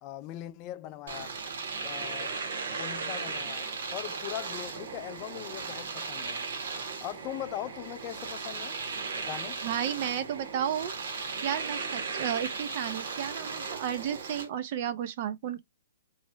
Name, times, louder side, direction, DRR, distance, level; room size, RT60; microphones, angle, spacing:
voice 1, 0.0-1.4 1.8-2.4 2.7-3.7 3.9-6.4 7.0-9.6, left 13 dB, 25° left, 0.3 m, -40 dB
Domestic sounds home sounds, 1.1-14.5, right 4 dB, 65° right, 1.2 m, -36 dB
voice 2, 9.6-10.9 11.4-15.6, right 9 dB, 40° right, 0.4 m, -32 dB
3.1 x 2.5 x 2.7 m
hypercardioid pair, 160°, 0 cm